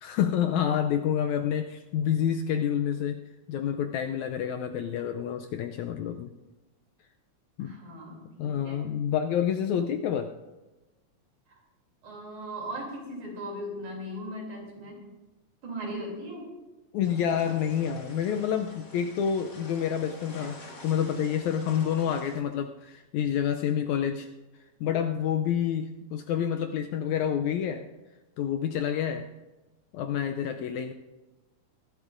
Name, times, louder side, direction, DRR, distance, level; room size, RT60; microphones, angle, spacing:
voice 1, 0.0-3.2 3.5-6.3 7.6-7.7 8.4-10.3 16.9-24.3 24.8-27.9 28.4-29.3 29.9-30.9, left 9 dB, 80° left, 6 dB, 1.7 m, -28 dB
voice 2, 7.6-8.9 12.0-15.0 15.6-16.6, equal, 65° right, -1 dB, 4.3 m, -38 dB
sound 1, 17.0-22.4, left 2 dB, 35° left, 2.1 m, -47 dB
21.0 x 12.0 x 2.6 m, 1.1 s
omnidirectional pair, 3.7 m